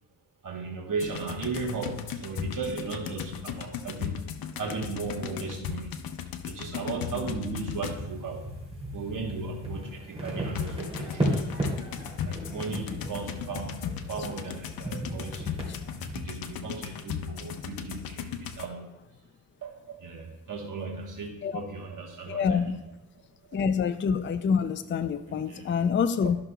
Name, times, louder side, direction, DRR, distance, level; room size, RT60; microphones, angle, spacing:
voice 1, 0.4-8.5 8.9-11.6 12.2-15.6 16.1-19.0 19.6-23.6 25.3-25.8 26.2-26.3, right 4 dB, 65° right, -1 dB, 1.2 m, -36 dB
sound 1, 1.0-8.3 10.6-18.7, left 8 dB, 90° left, 0.6 m, -37 dB
sound 2, 7.8-16.2, right 1 dB, 15° right, 2.7 m, -35 dB
voice 2, 22.3-22.8 23.5-26.4, left 6 dB, 35° left, 11 dB, 0.4 m, -26 dB
12.5 x 5.9 x 2.2 m, 0.91 s
cardioid pair, 90°, 35 cm